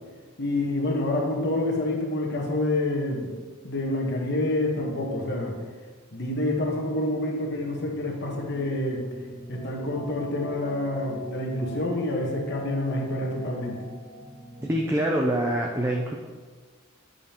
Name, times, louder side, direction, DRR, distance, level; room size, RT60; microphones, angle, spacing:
voice 1, 0.4-3.3 3.6-5.5 6.1-9.1 9.5-13.8, left 1 dB, 55° left, -1 dB, 1.2 m, -27 dB
sound 1, 7.4-15.0, equal, 15° left, 1.8 m, -42 dB
voice 2, 14.6-16.1, right 1 dB, 10° right, -1 dB, 0.4 m, -25 dB
8.5 x 5.1 x 2.9 m, 1.5 s
head